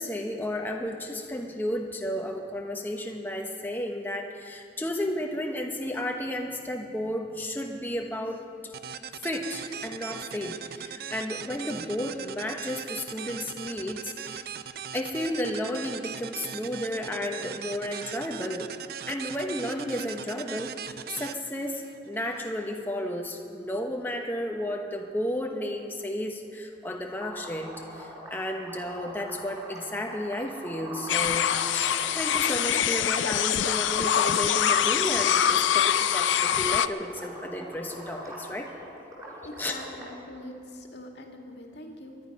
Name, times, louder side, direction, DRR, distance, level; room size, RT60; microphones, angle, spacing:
voice 1, 0.0-8.7 9.2-14.5 14.9-18.7 19.1-38.7 39.6-39.7, left 1 dB, 10° left, 2 dB, 0.9 m, -33 dB
sound 1, 8.7-22.4, right 8 dB, 55° right, 0.4 m, -40 dB
sound 2, 27.2-33.1 33.5-40.1, equal, 20° right, 4.1 m, -42 dB
sound 3, 31.1-36.9, left 9 dB, 90° left, 0.5 m, -24 dB
voice 2, 39.4-42.2, left 1 dB, 70° left, 2 dB, 1.8 m, -43 dB
22.5 x 11.5 x 5.3 m, 2.4 s
head